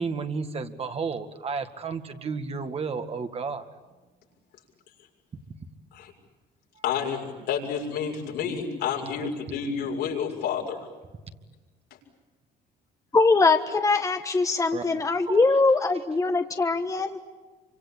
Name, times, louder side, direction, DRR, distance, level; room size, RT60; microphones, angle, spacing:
voice 1, 0.0-3.7 14.7-15.6, right 5 dB, 35° right, 7 dB, 2.0 m, -32 dB
voice 2, 6.8-10.8, left 7 dB, 85° left, 0 dB, 6.7 m, -30 dB
voice 3, 13.1-17.2, left 3 dB, 20° left, 7 dB, 1.3 m, -22 dB
27.0 x 25.5 x 8.6 m, 1.3 s
cardioid pair, 110°, 17 cm